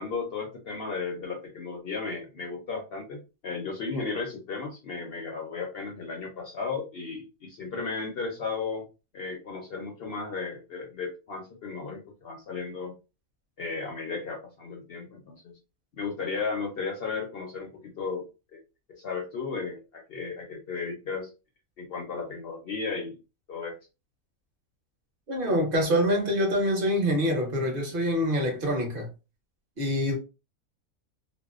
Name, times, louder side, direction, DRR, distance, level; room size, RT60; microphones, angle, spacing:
voice 1, 0.0-8.9 9.1-12.9 13.6-15.5 16.0-18.2 18.5-18.6 19.0-21.3 21.8-23.2 23.5-23.7, left 4 dB, 60° left, 0.6 m, -34 dB
voice 2, 25.3-29.1 29.8-30.2, equal, 45° right, 0.8 m, -25 dB
2.6 x 2.0 x 2.4 m
omnidirectional pair, 1.6 m